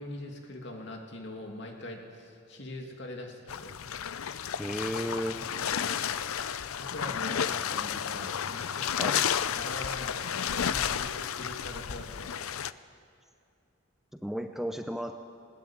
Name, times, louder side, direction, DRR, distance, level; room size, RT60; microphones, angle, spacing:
voice 1, 0.0-3.9 5.5-6.0 6.8-12.3, left 1 dB, 55° left, 2 dB, 2.6 m, -42 dB
sound 1, 3.5-12.7, left 8 dB, 80° left, 0.6 m, -32 dB
voice 2, 4.6-5.4 9.0-9.2 14.1-15.1, equal, ahead, 6 dB, 0.6 m, -33 dB
20.0 x 19.5 x 8.7 m, 2.6 s
head